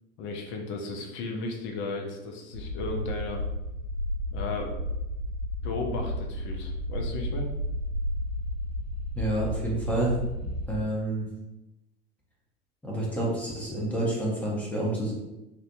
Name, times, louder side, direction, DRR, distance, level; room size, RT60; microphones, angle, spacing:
voice 1, 0.2-3.4 4.3-4.7 5.6-7.5, left 3 dB, 40° left, 2 dB, 0.5 m, -35 dB
sound 1, 2.5-10.8, equal, 75° right, 0.9 m, -32 dB
voice 2, 9.1-10.1 10.7-11.3 12.8-15.1, right 1 dB, 5° left, -4 dB, 0.8 m, -28 dB
2.5 x 2.1 x 2.5 m, 0.96 s
figure-of-eight pair, 75°, 31 cm